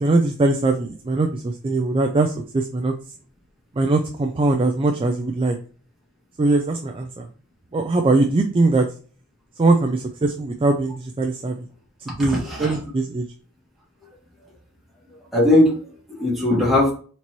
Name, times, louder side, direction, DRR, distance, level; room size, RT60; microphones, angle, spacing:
voice 1, 0.0-2.9 3.8-5.6 6.4-7.3 7.7-8.9 9.6-11.7 12.1-13.3, right 2 dB, 25° right, 3 dB, 0.4 m, -21 dB
voice 2, 12.2-12.8 15.3-16.9, left 1 dB, ahead, -4 dB, 1.7 m, -19 dB
4.4 x 4.0 x 3.0 m, 0.41 s
head